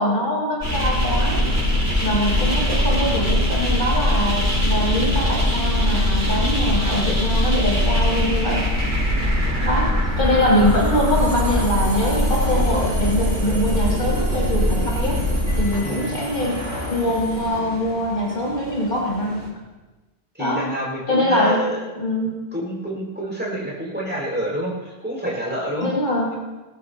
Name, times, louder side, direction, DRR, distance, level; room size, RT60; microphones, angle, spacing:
voice 1, 0.0-1.4 2.0-8.7 9.6-9.9 10.2-15.2 15.6-16.6 16.9-19.5 20.4-20.6 21.1-21.6 22.0-22.3 25.8-26.3, left 1 dB, 45° left, -6 dB, 5.7 m, -23 dB
sound 1, 0.6-19.5, equal, 75° right, 6.1 m, -22 dB
voice 2, 20.3-21.8 22.5-25.9, right 1 dB, 10° right, -4 dB, 5.7 m, -27 dB
26.5 x 13.5 x 3.0 m, 1.2 s
omnidirectional pair, 1.2 m